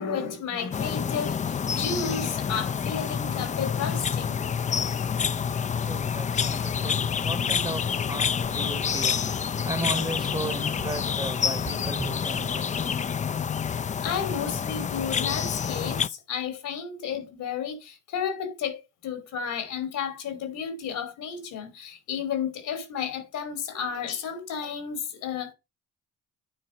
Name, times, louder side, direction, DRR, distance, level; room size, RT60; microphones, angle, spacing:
voice 1, 0.0-4.4 14.0-25.5, left 7 dB, 85° left, 2.7 m, -32 dB
sound 1, 0.7-16.1, left 7 dB, 25° left, 0.3 m, -28 dB
voice 2, 5.4-13.1, right 2 dB, 15° right, 0.9 m, -36 dB
9.5 x 4.1 x 4.8 m
cardioid pair, 90°, 30 cm